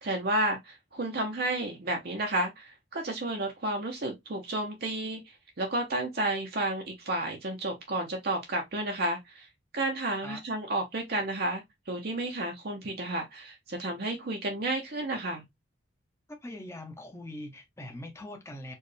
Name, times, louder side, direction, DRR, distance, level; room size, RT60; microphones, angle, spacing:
voice 1, 0.0-5.2 5.6-9.5 9.7-11.6 11.9-15.4, right 1 dB, 50° right, 0.8 m, -31 dB
voice 2, 16.3-18.7, left 1 dB, 15° left, 0.8 m, -42 dB
4.4 x 2.4 x 3.2 m
head